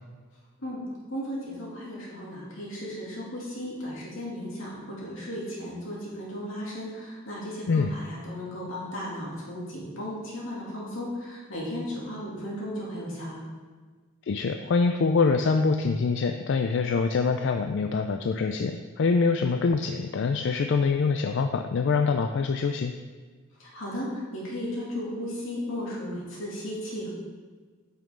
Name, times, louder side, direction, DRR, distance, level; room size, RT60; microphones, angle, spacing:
voice 1, 1.1-13.4 23.6-27.1, equal, 85° left, -5 dB, 2.7 m, -35 dB
voice 2, 14.3-22.9, left 4 dB, 65° left, 6 dB, 0.4 m, -25 dB
9.4 x 5.8 x 3.8 m, 1.5 s
head